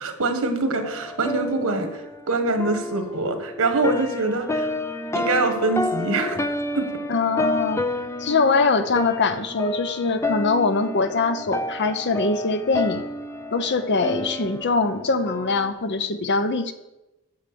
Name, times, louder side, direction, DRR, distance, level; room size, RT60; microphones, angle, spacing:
voice 1, 0.0-4.7 5.1-6.4 6.7-7.0, right 3 dB, 70° right, 6 dB, 1.6 m, -24 dB
sound 1, 0.8-15.7, left 2 dB, 10° left, 0.5 m, -30 dB
voice 2, 7.1-7.9 8.2-13.1 13.5-16.7, left 3 dB, 50° left, 9 dB, 0.8 m, -23 dB
8.5 x 7.6 x 6.9 m, 0.99 s
head